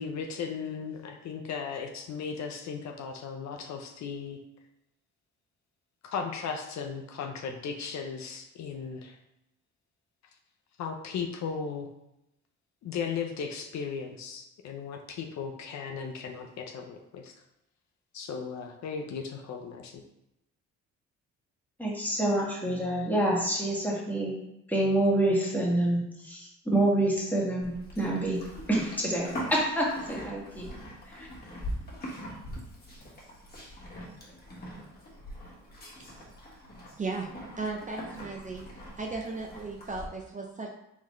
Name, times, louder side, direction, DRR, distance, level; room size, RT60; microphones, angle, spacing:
voice 1, 0.0-4.4 6.1-9.2 10.8-11.9 12.8-17.3 18.1-20.0, left 6 dB, 65° left, 4 dB, 0.6 m, -36 dB
voice 2, 21.8-24.3 24.7-28.4 28.7-30.7 31.1-31.3, right 1 dB, 5° left, -4 dB, 1.4 m, -27 dB
Livestock farm animals working animals, 27.6-40.1, equal, 30° left, 1.4 m, -42 dB
voice 3, 37.6-38.6 39.0-40.7, right 3 dB, 25° right, 1 dB, 0.5 m, -35 dB
3.8 x 3.6 x 3.1 m, 0.86 s
cardioid pair, 90°, 30 cm